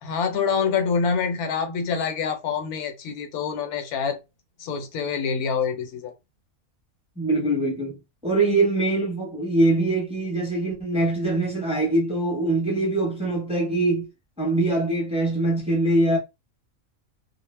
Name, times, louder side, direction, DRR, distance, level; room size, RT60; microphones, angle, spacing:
voice 1, 0.0-4.2 4.6-6.1, left 6 dB, 90° left, 1.2 m, -26 dB
voice 2, 7.2-8.0 8.2-14.1 14.4-16.2, right 2 dB, 5° right, 0.8 m, -23 dB
2.4 x 2.1 x 3.2 m
omnidirectional pair, 1.5 m